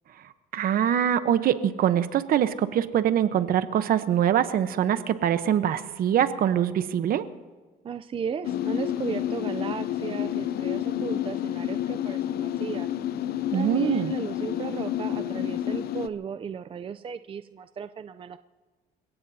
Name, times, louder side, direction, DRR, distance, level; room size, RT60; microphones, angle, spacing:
voice 1, 0.5-7.2 13.5-14.1, right 10 dB, 60° right, 11 dB, 1.0 m, -24 dB
voice 2, 7.8-12.9 13.5-18.4, right 7 dB, 30° right, 11 dB, 0.5 m, -35 dB
sound 1, 8.4-16.1, left 11 dB, 65° left, 0.6 m, -29 dB
29.0 x 17.0 x 2.8 m, 1.4 s
cardioid pair, 110°, 17 cm